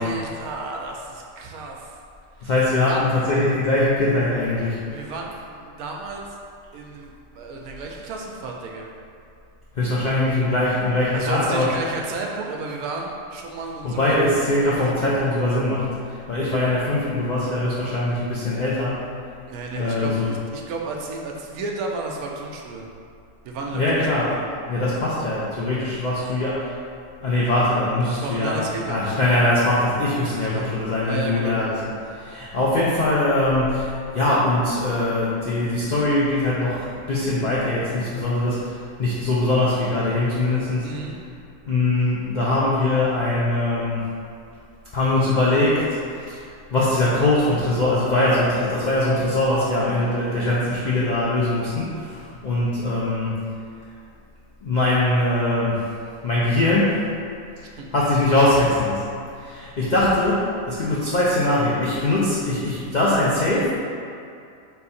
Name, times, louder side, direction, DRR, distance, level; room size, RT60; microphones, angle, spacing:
voice 1, 0.0-1.9 2.4-3.1 4.9-6.4 6.7-8.9 11.1-14.3 14.8-15.1 19.5-22.9 23.4-24.4 28.0-29.2 30.4-30.7 31.0-31.6 40.8-41.2 57.8-57.9, right 3 dB, 85° right, 0 dB, 1.1 m, -32 dB
voice 2, 2.4-4.8 9.7-11.7 13.8-19.0 19.7-20.3 23.7-24.4 24.7-26.7 27.2-28.6 28.9-31.7 32.0-40.9 41.6-44.1 44.9-46.0 46.3-46.4 46.7-53.4 54.6-55.8 56.2-57.0 57.9-59.1 59.4-63.8, left 2 dB, 90° left, -7 dB, 0.4 m, -22 dB
3.8 x 2.7 x 4.1 m, 2.4 s
omnidirectional pair, 1.5 m